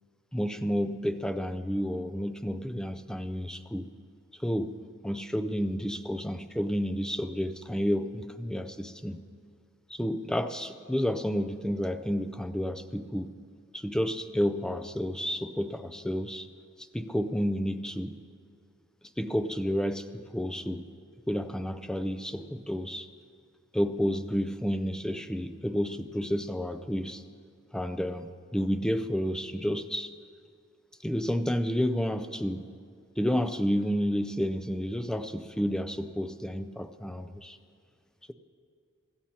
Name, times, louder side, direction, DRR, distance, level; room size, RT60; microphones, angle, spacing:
voice 1, 0.3-3.9 4.4-4.8 5.0-9.2 9.9-13.3 13.7-16.5 16.9-18.2 19.2-20.8 21.3-23.1 23.7-27.2 27.7-30.1 31.0-32.6 33.2-37.6, equal, 5° left, 9 dB, 0.4 m, -30 dB
24.5 x 13.0 x 2.9 m, 2.3 s
head